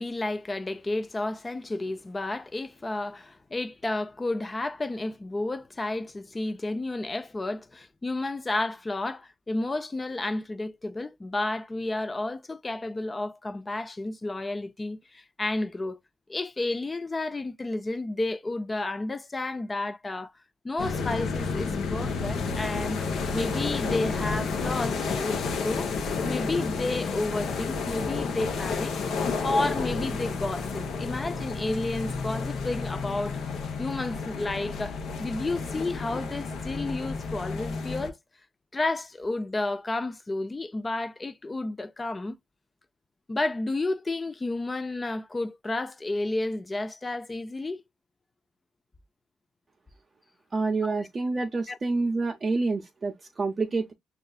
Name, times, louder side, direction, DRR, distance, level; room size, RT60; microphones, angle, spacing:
voice 1, 0.0-16.0 16.3-20.3 20.6-23.0 23.3-25.9 26.2-28.9 29.4-33.4 33.8-38.2 38.7-42.4 43.3-47.8 50.8-51.0 51.7-51.8, left 2 dB, 25° left, 0.4 m, -31 dB
sound 1, 20.8-38.1, left 4 dB, 75° left, 0.8 m, -31 dB
voice 2, 50.5-53.9, right 3 dB, 40° right, 0.6 m, -28 dB
5.4 x 2.4 x 2.3 m
supercardioid pair, 65°, 0 cm